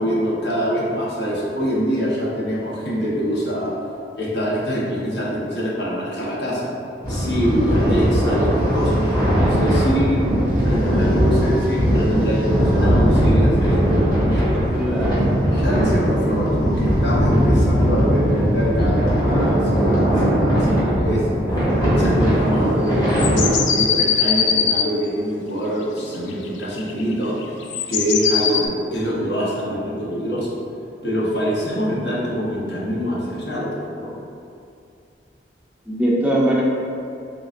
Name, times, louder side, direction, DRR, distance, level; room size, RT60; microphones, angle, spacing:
voice 1, 0.0-3.7 4.2-6.7 7.1-10.4 10.6-14.6 15.4-21.4 21.8-27.3 27.9-30.5 31.0-34.1, equal, 65° left, -6 dB, 0.9 m, -24 dB
sound 1, 7.0-23.5, equal, 20° left, 1.2 m, -19 dB
voice 2, 14.7-15.2 16.2-16.4 35.9-36.6, right 1 dB, 5° right, -6 dB, 0.4 m, -21 dB
sound 2, 23.2-24.9 26.3-28.7, left 7 dB, 80° left, 0.3 m, -20 dB
3.8 x 3.7 x 2.5 m, 2.5 s
head